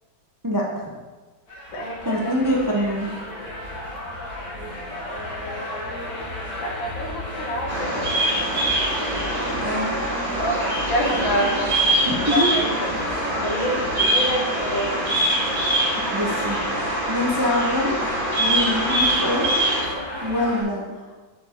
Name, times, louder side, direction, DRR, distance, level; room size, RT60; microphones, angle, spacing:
voice 1, 0.4-0.8 2.0-3.1 9.6-10.0 12.1-12.5 16.1-16.6 17.1-18.0 18.4-19.5 20.2-20.9, left 1 dB, 20° right, -3 dB, 0.5 m, -24 dB
sound 1, 1.5-20.6, left 1 dB, 50° left, 2.7 m, -33 dB
voice 2, 1.7-2.4 5.0-6.1 6.6-9.0 10.4-12.9 13.4-14.9, equal, 75° left, 0 dB, 2.0 m, -28 dB
Bird vocalization bird call bird song, 7.7-19.8, right 1 dB, 80° right, 3.5 m, -24 dB
9.8 x 4.7 x 4.5 m, 1.3 s
omnidirectional pair, 2.1 m